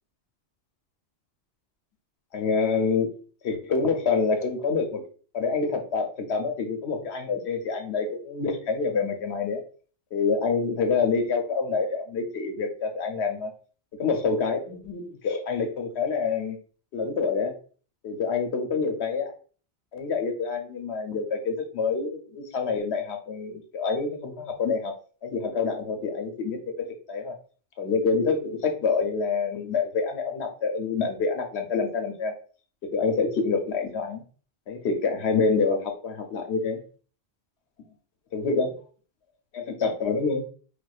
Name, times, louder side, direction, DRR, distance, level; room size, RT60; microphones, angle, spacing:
voice 1, 2.3-3.1 3.4-5.0 5.3-9.6 10.1-13.5 14.0-16.6 16.9-17.5 18.0-19.3 19.9-24.9 25.2-26.6 27.1-27.3 27.8-32.3 32.9-34.2 34.7-36.8 38.3-38.7 39.5-40.4, left 4 dB, 75° left, 4 dB, 0.9 m, -27 dB
4.3 x 2.3 x 2.3 m, 0.41 s
omnidirectional pair, 1.1 m